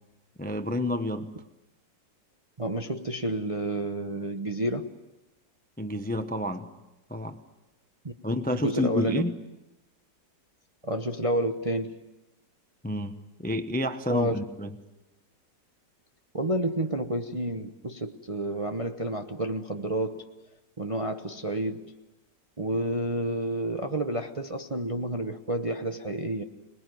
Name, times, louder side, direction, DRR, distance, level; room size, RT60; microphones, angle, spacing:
voice 1, 0.4-1.3 5.8-6.7 7.1-7.4 8.2-9.3 12.8-14.7, left 1 dB, 10° left, 0.7 m, -29 dB
voice 2, 2.6-4.9 8.0-8.1 8.5-9.2 10.8-12.0 14.1-14.4 16.3-20.2 20.8-21.9 22.6-26.4, right 1 dB, 25° right, 0.8 m, -30 dB
26.0 x 20.5 x 9.4 m
omnidirectional pair, 1.9 m